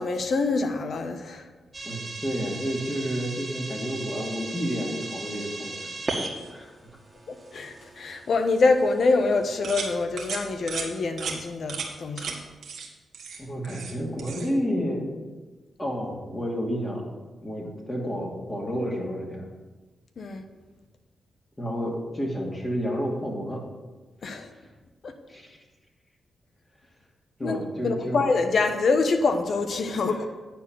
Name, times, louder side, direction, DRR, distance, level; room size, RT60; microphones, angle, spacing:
voice 1, 0.0-1.5 7.3-12.4 20.2-20.4 24.2-24.5 25.0-25.1 27.4-27.6 27.8-30.3, left 3 dB, 65° left, 7 dB, 1.0 m, -25 dB
sound 1, 1.7-10.0, right 2 dB, 30° right, 1.8 m, -38 dB
voice 2, 1.8-5.9 6.5-6.7 13.4-15.1 15.8-17.1 17.4-19.5 21.6-23.6 24.5-24.6 25.3-25.6 27.4-28.2 30.1-30.3, equal, 25° left, -3 dB, 2.7 m, -30 dB
sound 2, 9.6-9.9 10.2-10.4 10.7-10.9 11.2-11.4 11.7-11.9 12.2-12.3 12.6-12.9 13.1-13.9 14.2-14.5, right 5 dB, 70° right, 1.4 m, -34 dB
9.3 x 4.4 x 7.2 m, 1.3 s
supercardioid pair, 50°, 0 cm